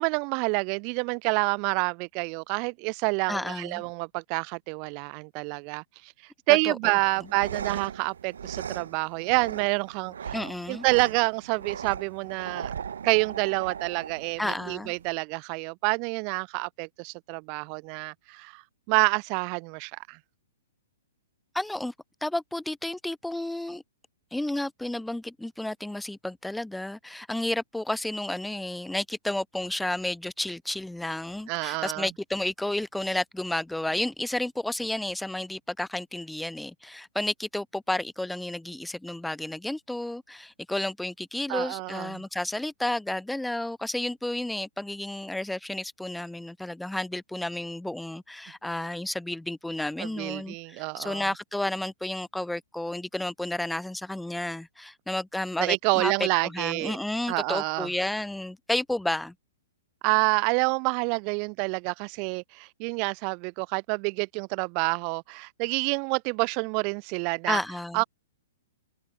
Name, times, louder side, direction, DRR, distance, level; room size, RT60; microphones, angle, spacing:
voice 1, 0.0-6.1 6.5-10.4 10.7-12.7 13.0-18.6 18.9-20.2 31.5-32.1 41.5-42.2 50.0-51.3 55.6-57.0 57.3-57.9 60.0-67.6 67.9-68.0, right 37 dB, 35° right, 0.7 m, -28 dB
voice 2, 3.3-3.8 6.6-6.8 10.3-10.9 14.4-14.9 21.5-21.9 22.2-23.8 24.3-59.3 67.5-68.0, left 1 dB, 5° left, 0.5 m, -31 dB
sound 1, 7.1-15.1, right 7 dB, 80° right, 4.2 m, -38 dB
hypercardioid pair, 145°, 0 cm